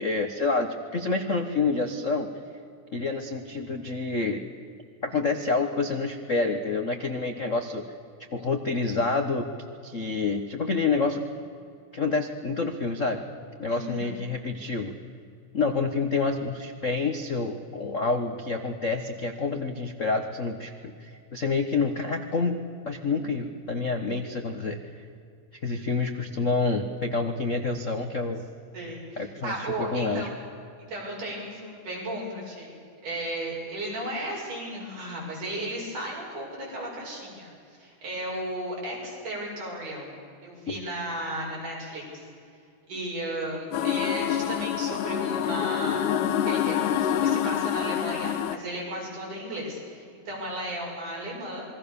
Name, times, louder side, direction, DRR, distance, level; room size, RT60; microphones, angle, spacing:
voice 1, 0.0-2.3 2.9-4.4 5.0-7.8 8.3-9.5 9.8-11.3 11.9-13.2 13.6-15.0 15.5-20.7 21.0-22.6 22.8-24.8 25.6-28.4 29.2-29.5 29.8-30.3 40.7-40.8, left 4 dB, 65° left, 6 dB, 0.7 m, -28 dB
voice 2, 13.7-14.1 28.7-30.3 30.9-32.8 33.0-40.1 40.4-42.3 42.9-46.2 46.4-51.7, right 1 dB, 85° right, -3 dB, 9.1 m, -35 dB
sound 1, 43.7-48.6, left 10 dB, 85° left, 2.5 m, -26 dB
27.5 x 22.5 x 7.0 m, 2.4 s
omnidirectional pair, 3.5 m